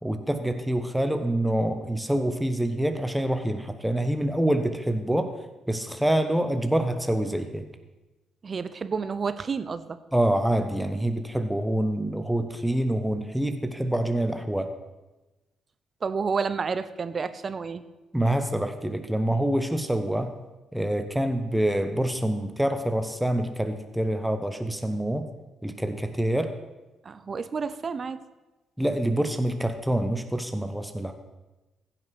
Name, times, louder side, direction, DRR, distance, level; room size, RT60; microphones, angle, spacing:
voice 1, 0.0-5.3 5.7-7.7 10.1-14.7 18.1-20.3 20.7-25.3 25.6-26.5 28.8-31.1, right 1 dB, 5° right, 7 dB, 1.1 m, -26 dB
voice 2, 8.4-10.0 16.0-17.8 27.0-28.2, right 5 dB, 40° right, 13 dB, 0.7 m, -30 dB
15.5 x 5.9 x 6.3 m, 1.1 s
hypercardioid pair, 45°, 0 cm